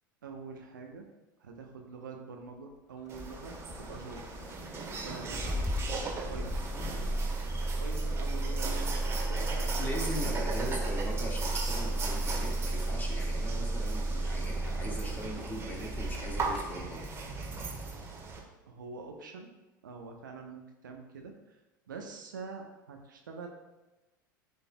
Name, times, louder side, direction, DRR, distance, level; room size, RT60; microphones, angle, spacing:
voice 1, 0.2-1.1 1.4-4.2 5.0-6.5 7.8-10.5 18.7-19.5 19.8-21.6 21.9-23.5, right 4 dB, 70° right, 3 dB, 1.0 m, -45 dB
sound 1, 2.9-16.3, left 3 dB, 50° left, 2.2 m, -52 dB
Engine starting, 3.1-17.3, right 1 dB, 5° right, 0.4 m, -34 dB
sound 2, 3.1-18.4, right 4 dB, 25° right, 1.5 m, -39 dB
voice 2, 9.8-17.1, equal, 15° left, -1 dB, 1.9 m, -40 dB
13.5 x 5.2 x 2.3 m, 1.1 s
figure-of-eight pair, 75°, 11 cm